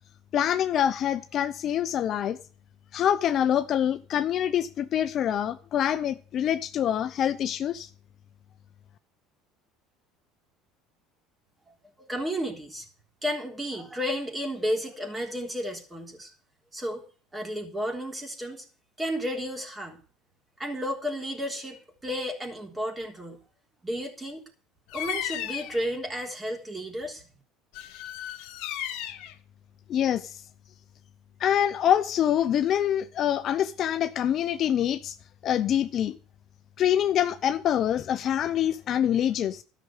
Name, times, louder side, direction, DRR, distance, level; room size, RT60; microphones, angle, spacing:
voice 1, 0.3-2.4 2.9-7.9 29.9-30.4 31.4-35.2 35.4-36.2 36.8-39.6, left 10 dB, 45° left, 0.6 m, -25 dB
voice 2, 11.7-12.9 13.2-16.3 16.7-17.0 17.3-18.6 19.0-20.0 20.6-23.4 23.8-24.4 24.9-27.2, equal, 10° right, 3.6 m, -32 dB
Bird vocalization bird call bird song, 24.9-25.9 27.7-29.3, left 12 dB, 70° left, 1.7 m, -35 dB
13.5 x 6.2 x 8.1 m
cardioid pair, 130°, 0 cm